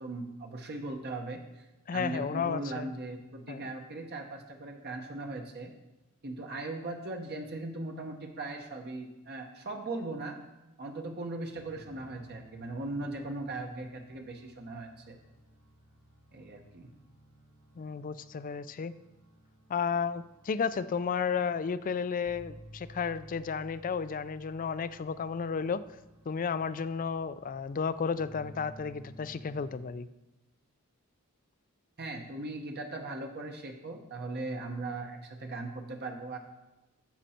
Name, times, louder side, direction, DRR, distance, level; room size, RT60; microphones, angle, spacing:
voice 1, 0.0-1.7 1.9-5.7 6.2-10.4 10.8-15.2 16.3-16.9 32.0-36.4, right 2 dB, 50° right, 3 dB, 0.9 m, -39 dB
voice 2, 1.9-2.9 3.5-3.7 17.8-19.0 19.7-25.8 26.3-30.1, left 6 dB, 40° left, 15 dB, 0.4 m, -33 dB
sound 1, 11.5-29.8, equal, 85° right, 1.9 m, -55 dB
10.5 x 7.5 x 4.3 m, 0.99 s
head